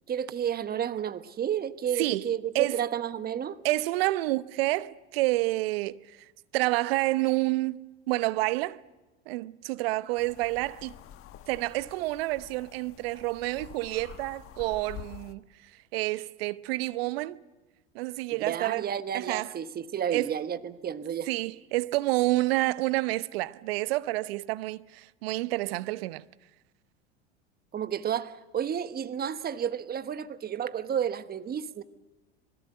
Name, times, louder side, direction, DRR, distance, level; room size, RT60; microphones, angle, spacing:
voice 1, 0.1-3.6 18.4-21.3 27.7-31.8, right 9 dB, 30° right, 1.3 m, -31 dB
voice 2, 3.6-6.2 6.5-8.8 9.3-10.9 11.5-15.4 15.9-17.4 17.9-18.8 19.1-19.6 20.1-20.3 21.3-26.2, right 19 dB, 65° right, 0.9 m, -29 dB
sound 1, 10.2-15.3, left 11 dB, 40° left, 1.3 m, -48 dB
26.5 x 21.0 x 7.9 m
hypercardioid pair, 85°, 32 cm